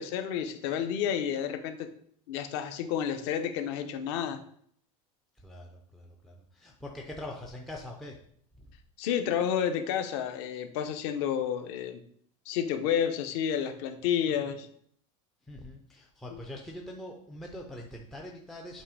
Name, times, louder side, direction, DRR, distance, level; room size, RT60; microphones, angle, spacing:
voice 1, 0.0-1.9 2.3-4.4 9.0-12.0 12.5-14.7, left 8 dB, 50° left, 8 dB, 0.7 m, -30 dB
voice 2, 5.3-8.2 8.6-8.8 15.4-18.8, left 1 dB, ahead, 0 dB, 0.3 m, -43 dB
7.5 x 3.0 x 4.8 m, 0.63 s
supercardioid pair, 180°, 18 cm